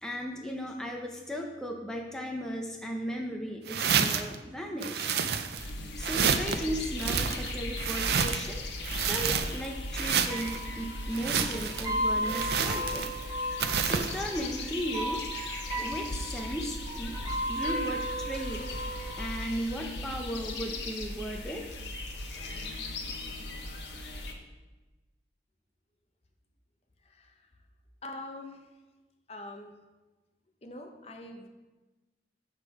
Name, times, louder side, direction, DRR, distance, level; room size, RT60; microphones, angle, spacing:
voice 1, 0.0-5.1 6.0-8.6 9.0-13.1 13.8-15.2 15.8-18.7 19.2-21.6, equal, 5° left, 0 dB, 0.7 m, -36 dB
sound 1, 3.7-4.3 4.8-5.7 6.0-6.6 7.0-8.5 8.8-9.7 9.9-10.6 11.1-11.9 12.3-13.2 13.6-14.2, right 6 dB, 65° right, 0.5 m, -29 dB
sound 2, 5.6-24.3, left 2 dB, 80° left, 1.1 m, -38 dB
sound 3, 9.7-9.8 10.0-10.1 10.3-19.4, equal, 25° right, 3.3 m, -35 dB
voice 2, 27.0-27.4 28.0-28.7 29.3-29.7 30.6-31.5, left 2 dB, 35° left, 4 dB, 0.8 m, -44 dB
8.0 x 6.7 x 4.8 m, 1.2 s
head